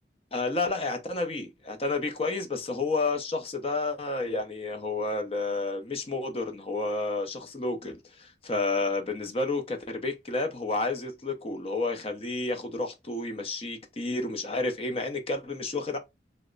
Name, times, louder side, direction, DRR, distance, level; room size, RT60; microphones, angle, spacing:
voice 1, 0.3-16.0, left 3 dB, 35° left, 0.6 m, -30 dB
3.1 x 2.0 x 3.7 m
head